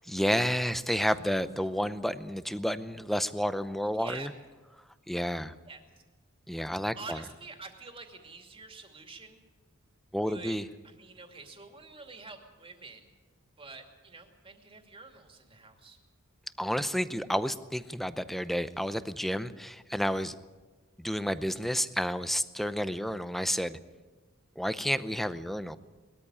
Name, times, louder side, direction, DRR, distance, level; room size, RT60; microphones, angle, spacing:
voice 1, 0.1-4.3 5.1-5.5 6.5-7.2 10.1-10.7 16.6-20.3 21.0-23.8 24.6-25.8, equal, ahead, 13 dB, 0.6 m, -30 dB
voice 2, 3.9-4.3 5.7-5.8 6.6-9.4 10.1-10.6 10.8-13.1 13.6-16.0, right 4 dB, 25° right, 4 dB, 2.6 m, -47 dB
21.0 x 13.5 x 9.8 m, 1.3 s
head